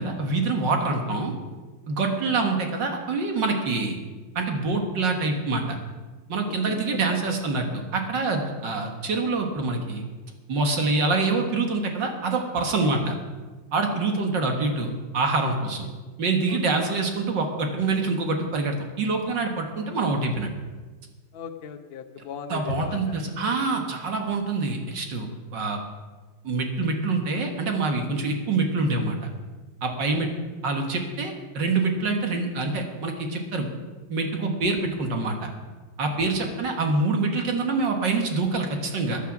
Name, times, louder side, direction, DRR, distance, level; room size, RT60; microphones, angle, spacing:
voice 1, 0.0-1.3 1.9-4.0 4.4-5.8 6.3-10.0 10.5-13.1 13.7-15.9 16.2-20.5 22.5-25.8 26.4-29.3 29.8-30.3 30.6-33.7 34.1-35.5 36.0-39.2, right 3 dB, 60° right, 3 dB, 2.1 m, -25 dB
voice 2, 6.4-7.4 12.8-13.1 16.5-16.6 21.3-23.1 30.0-30.4 36.2-36.6, left 7 dB, 60° left, 7 dB, 0.6 m, -39 dB
14.5 x 10.0 x 6.0 m, 1.3 s
omnidirectional pair, 2.4 m